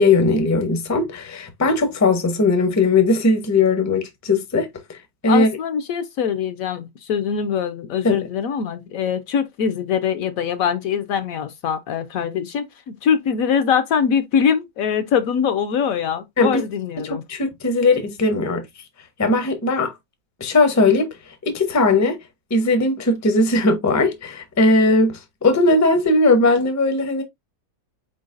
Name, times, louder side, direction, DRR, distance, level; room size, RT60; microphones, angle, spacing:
voice 1, 0.0-4.7 5.2-5.5 8.0-8.2 16.4-16.6 17.0-18.6 19.2-19.9 20.4-21.1 21.5-22.2 22.5-27.2, left 2 dB, 20° left, 0.4 m, -18 dB
voice 2, 5.3-17.2, left 7 dB, 70° left, 0.9 m, -23 dB
4.4 x 3.9 x 2.5 m
omnidirectional pair, 1.7 m